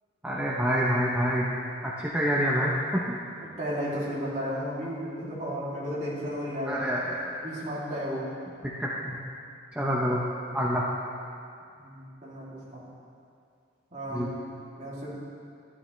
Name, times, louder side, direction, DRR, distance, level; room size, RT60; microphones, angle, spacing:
voice 1, 0.2-1.5 1.8-3.2 6.7-7.3 8.6-9.2 9.7-10.2 10.5-10.8 14.1-14.3, equal, 5° right, -5 dB, 0.7 m, -27 dB
voice 2, 3.4-6.8 7.4-8.3 11.7-12.8 13.9-14.2 14.8-15.1, equal, 35° right, -7 dB, 2.7 m, -33 dB
12.5 x 12.0 x 3.2 m, 2.5 s
head